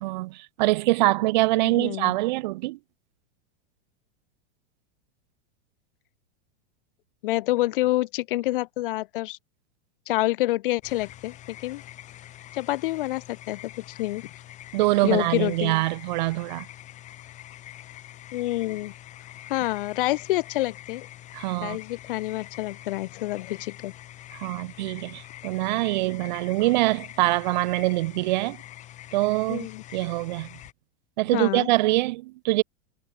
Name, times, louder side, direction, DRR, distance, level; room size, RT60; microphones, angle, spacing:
voice 1, 0.0-2.8 14.7-16.7 21.3-21.8 24.3-28.6 29.1-30.6 31.2-32.6, right 20 dB, 50° right, 0.5 m, -24 dB
voice 2, 1.6-2.1 7.2-9.4 10.1-11.3 11.6-11.8 12.5-14.4 15.0-15.7 18.3-18.9 19.5-21.1 21.6-23.9 29.5-29.8 31.3-31.7, left 17 dB, 60° left, 1.5 m, -27 dB
sound 1, 10.8-30.7, left 13 dB, 25° left, 2.6 m, -45 dB
supercardioid pair, 170°, 30 cm